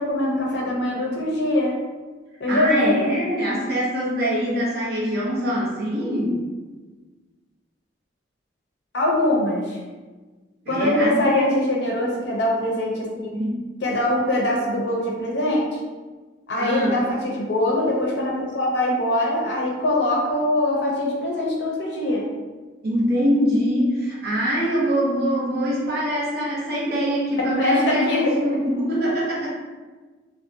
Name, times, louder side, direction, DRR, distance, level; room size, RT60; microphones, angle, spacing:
voice 1, 0.0-1.7 2.4-3.0 8.9-9.8 10.7-13.3 13.8-15.8 16.5-22.3 27.5-28.3, left 1 dB, 60° left, -2 dB, 0.6 m, -22 dB
voice 2, 2.5-6.4 10.7-11.2 13.3-13.6 16.6-17.0 22.8-29.5, equal, 50° right, -6 dB, 0.7 m, -23 dB
2.7 x 2.1 x 2.5 m, 1.3 s
head